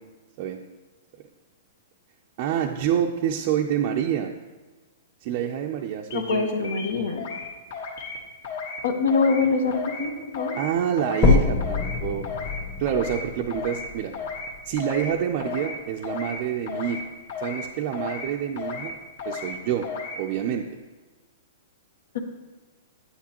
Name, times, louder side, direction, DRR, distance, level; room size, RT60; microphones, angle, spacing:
voice 1, 2.4-4.3 5.2-6.7 10.5-12.3 12.8-14.1 14.7-17.1 17.4-18.9 19.2-19.9 20.2-20.7, right 9 dB, 40° right, 1 dB, 0.4 m, -27 dB
voice 2, 6.1-7.3 8.8-10.5, left 4 dB, 75° left, 5 dB, 1.1 m, -24 dB
sound 1, 6.1-6.4 6.6-7.4 7.7-8.2 8.4-8.8 9.1-9.4 9.7-10.1 10.3-10.7 11.0-11.3 11.6-12.0 12.2-12.6 12.9-13.2 13.5-13.9 14.1-14.5 14.8-15.1 15.4-15.8 16.0-16.4 16.7-17.0 17.3-17.7 17.9-18.3 18.6-18.9 19.2-19.5 19.8-20.2, left 5 dB, 55° left, 1.3 m, -34 dB
sound 2, 11.2-15.2 15.8-15.9 16.4-16.5 16.9-17.0 17.8-17.9, left 4 dB, 25° left, 1.2 m, -25 dB
9.4 x 8.4 x 2.9 m, 1.3 s
hypercardioid pair, 165°, 0 cm